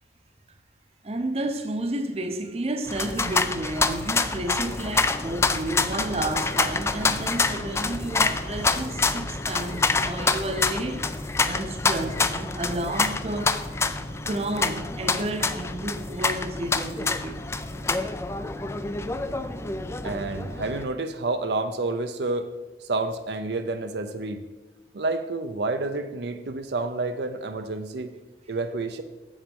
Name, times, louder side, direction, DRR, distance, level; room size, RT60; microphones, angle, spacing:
voice 1, 1.0-11.1 11.4-13.6 14.1-17.5, right 1 dB, 35° right, 0.7 m, -31 dB
sound 1, 2.9-20.8, left 3 dB, 15° left, 0.3 m, -27 dB
sound 2, 4.8-20.8, equal, 65° left, 2.1 m, -41 dB
voice 2, 20.0-22.5 22.8-24.4 24.9-28.1 28.5-29.0, right 3 dB, 70° right, 0.5 m, -29 dB
7.3 x 7.3 x 5.3 m
head